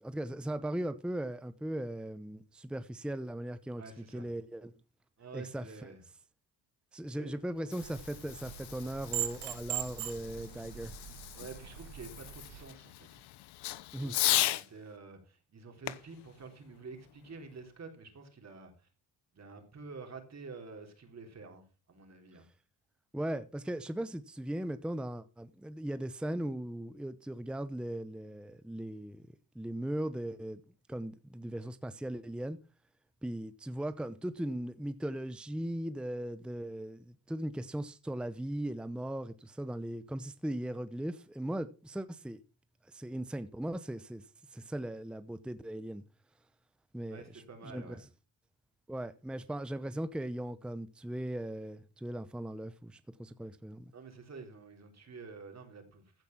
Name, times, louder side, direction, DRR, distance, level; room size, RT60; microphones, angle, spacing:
voice 1, 0.0-3.8 4.1-4.7 5.3-5.7 6.9-10.9 13.9-14.1 23.1-29.2 29.5-30.6 30.9-32.6 33.2-42.4 42.9-44.2 44.5-46.0 46.9-47.2 47.6-47.8 48.9-53.8, right 1 dB, ahead, 0.8 m, -38 dB
voice 2, 3.8-4.3 5.2-6.0 7.1-7.3 11.3-13.2 14.0-18.9 19.3-22.5 47.1-48.0 53.9-56.1, right 4 dB, 40° right, 3.5 m, -49 dB
Fireworks, 7.4-14.7 15.8-17.5, left 15 dB, 70° left, 0.9 m, -37 dB
sound 1, 7.8-12.6, right 12 dB, 90° right, 1.6 m, -41 dB
15.0 x 5.3 x 5.9 m
cardioid pair, 90°, 42 cm